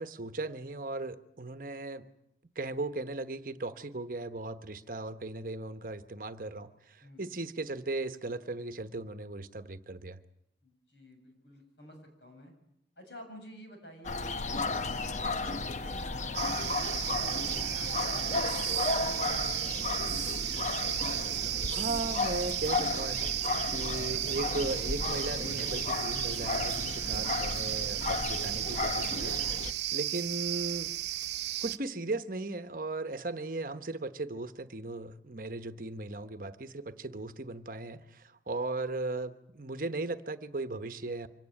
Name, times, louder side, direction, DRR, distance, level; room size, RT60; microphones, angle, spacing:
voice 1, 0.0-2.0 2.5-10.2 21.7-30.9 31.6-41.3, right 2 dB, 50° right, 10 dB, 1.1 m, -37 dB
voice 2, 7.0-7.3 10.6-12.5 13.0-19.9 27.0-27.4, equal, 75° left, 4 dB, 7.3 m, -50 dB
sound 1, 14.0-29.7, left 3 dB, 40° left, 0.8 m, -34 dB
sound 2, 16.3-31.8, right 14 dB, 70° right, 0.8 m, -34 dB
24.5 x 17.0 x 9.0 m, 0.80 s
head